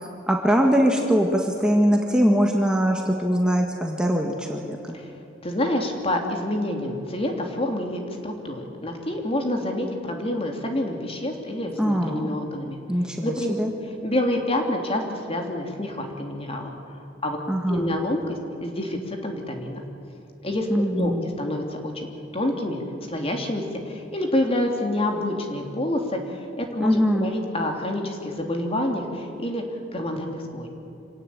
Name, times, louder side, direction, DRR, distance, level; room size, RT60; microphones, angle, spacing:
voice 1, 0.3-5.0 11.8-12.3 12.9-13.7 17.5-17.9 20.7-21.3 26.8-27.3, equal, 5° right, 1 dB, 1.7 m, -22 dB
voice 2, 5.4-12.8 13.2-13.5 14.0-16.7 17.2-17.4 17.7-19.8 20.4-21.1 21.4-22.8 23.1-26.2 26.6-29.6 29.9-30.7, left 1 dB, 30° left, 3 dB, 3.0 m, -27 dB
26.5 x 17.5 x 8.9 m, 2.9 s
head